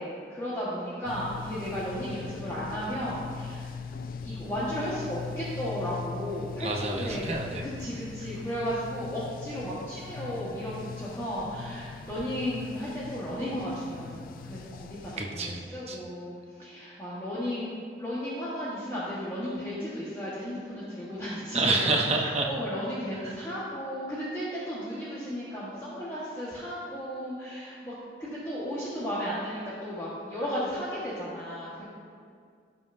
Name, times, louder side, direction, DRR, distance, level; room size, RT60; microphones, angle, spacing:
voice 1, 0.0-3.7 4.2-7.2 7.6-22.0 22.5-27.9 28.2-31.8, equal, 15° left, -10 dB, 1.4 m, -34 dB
sound 1, 1.0-15.2, left 5 dB, 50° left, 0.3 m, -41 dB
voice 2, 6.6-7.8 15.2-15.6 15.9-16.0 21.5-22.5 23.2-23.3, right 3 dB, 35° right, 0 dB, 0.9 m, -28 dB
16.5 x 5.5 x 2.7 m, 2.2 s
head